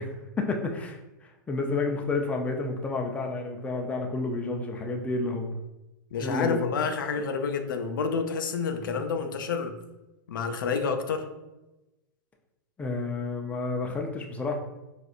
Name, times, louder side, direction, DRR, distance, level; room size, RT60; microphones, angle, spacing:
voice 1, 0.0-5.6 6.2-6.6 12.8-14.6, left 3 dB, 10° left, 2 dB, 0.4 m, -30 dB
voice 2, 6.1-9.8 10.3-11.2, left 5 dB, 75° left, 6 dB, 0.4 m, -29 dB
4.2 x 2.5 x 2.4 m, 1.0 s
hypercardioid pair, 115°, 11 cm